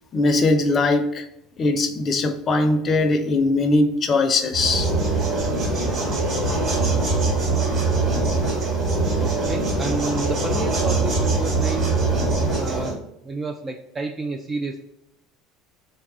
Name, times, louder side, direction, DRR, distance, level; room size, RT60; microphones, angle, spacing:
voice 1, 0.1-1.2 1.6-4.9 6.0-6.1 6.5-6.6 12.4-12.5, left 2 dB, 40° left, 0.5 m, -20 dB
sound 1, 4.5-13.0, right 3 dB, 50° right, 1.3 m, -22 dB
voice 2, 9.2-12.0 12.5-14.8, right 3 dB, 25° right, 0.4 m, -30 dB
3.2 x 2.3 x 3.7 m
hypercardioid pair, 85°, 0 cm